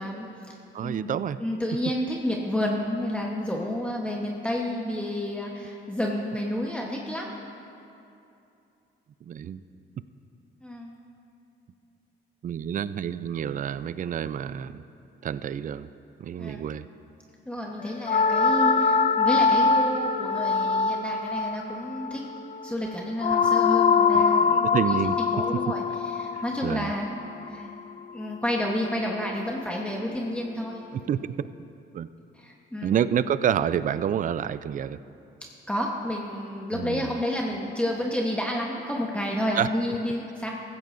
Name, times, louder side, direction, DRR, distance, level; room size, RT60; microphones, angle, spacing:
voice 1, 0.0-0.6 0.8-1.1 1.4-7.4 10.6-11.0 16.4-16.6 17.5-22.2 22.6-27.7 28.1-30.9 32.3-32.9 35.7-40.5, left 1 dB, 5° left, -2 dB, 1.0 m, -30 dB
voice 2, 0.7-1.4 9.2-9.6 12.4-14.8 15.2-15.9 16.2-16.9 24.1-24.2 24.7-25.2 26.3-26.9 30.9-31.5 31.9-32.1 32.8-35.0 36.7-37.1 39.6-39.7, right 9 dB, 40° right, 15 dB, 0.4 m, -28 dB
sound 1, 18.0-28.2, left 5 dB, 40° left, 0.5 m, -23 dB
15.5 x 14.5 x 2.6 m, 2.7 s
cardioid pair, 90°, 20 cm